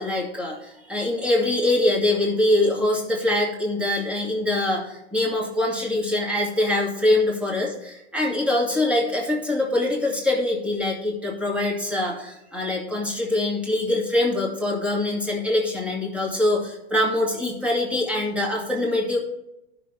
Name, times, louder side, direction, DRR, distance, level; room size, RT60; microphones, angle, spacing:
voice 1, 0.0-19.2, left 1 dB, 5° right, -3 dB, 2.2 m, -24 dB
14.0 x 6.1 x 3.4 m, 0.87 s
hypercardioid pair, 150°, 33 cm